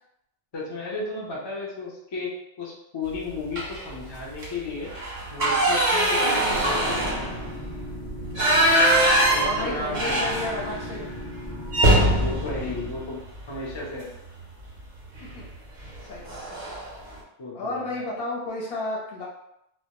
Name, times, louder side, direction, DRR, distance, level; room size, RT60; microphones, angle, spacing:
voice 1, 0.5-4.9 5.3-7.4 9.3-10.2 11.8-13.2 13.5-14.1 17.4-18.0, left 3 dB, 45° left, -4 dB, 0.3 m, -34 dB
sound 1, 3.5-3.9 4.3-4.5 4.8-10.9 11.2-11.3 11.7-13.8 15.2-15.4 15.8-16.0 16.3-16.9, right 1 dB, 50° right, 0.5 m, -23 dB
sound 2, 6.5-12.9, left 1 dB, 20° left, 0.9 m, -37 dB
voice 2, 8.5-8.9 9.4-11.1 15.2-15.4 16.0-16.7 17.5-19.3, left 2 dB, 60° left, -3 dB, 0.7 m, -33 dB
2.1 x 2.1 x 2.9 m, 0.82 s
omnidirectional pair, 1.3 m